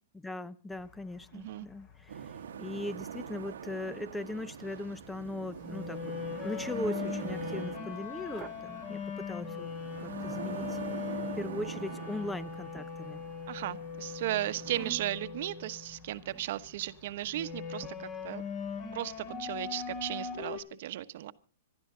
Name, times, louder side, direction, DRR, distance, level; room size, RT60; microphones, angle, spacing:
voice 1, 0.1-6.0 6.4-9.7 10.0-10.8 11.3-13.2, left 2 dB, 5° left, 0.8 m, -39 dB
sound 1, 0.7-20.6, left 6 dB, 35° left, 2.8 m, -41 dB
voice 2, 1.3-1.7 13.5-18.4 18.9-21.3, right 14 dB, 60° right, 1.1 m, -36 dB
sound 2, 2.1-14.9, right 8 dB, 90° right, 1.2 m, -43 dB
sound 3, 8.1-8.7 10.2-11.0 12.8-13.7 14.6-15.3 16.2-16.6 17.8-17.9, right 9 dB, 20° right, 1.0 m, -49 dB
25.5 x 11.5 x 3.8 m
hypercardioid pair, 145°, 0 cm